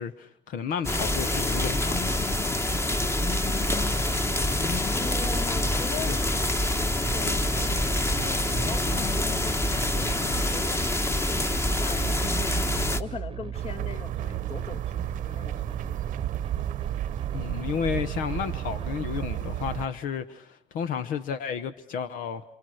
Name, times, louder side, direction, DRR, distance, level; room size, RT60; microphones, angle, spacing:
voice 1, 0.0-2.0 5.5-5.7 6.1-6.2 17.3-22.4, left 7 dB, 85° left, 12 dB, 1.2 m, -32 dB
sound 1, 0.8-13.0, left 1 dB, 20° left, 1.4 m, -26 dB
voice 2, 3.6-4.2 4.9-6.4 7.1-10.8 11.3-12.5 13.0-16.0, left 5 dB, 45° left, 7 dB, 1.9 m, -40 dB
sound 2, 7.0-19.0, right 8 dB, 40° right, 0.9 m, -37 dB
sound 3, 13.5-19.9, right 12 dB, 80° right, 1.0 m, -33 dB
28.0 x 28.0 x 6.5 m, 0.76 s
cardioid pair, 120°, 14 cm